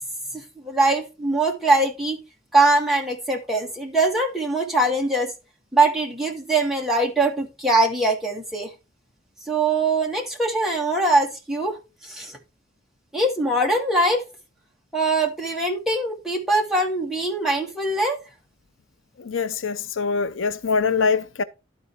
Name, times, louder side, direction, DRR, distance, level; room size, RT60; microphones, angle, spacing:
voice 1, 0.3-2.2 2.5-5.3 5.7-8.7 9.5-11.8 12.0-12.4 13.1-14.2 14.9-18.2, right 2 dB, ahead, 1.6 m, -22 dB
voice 2, 19.2-21.4, left 5 dB, 75° left, 0.6 m, -23 dB
12.0 x 4.1 x 4.3 m
head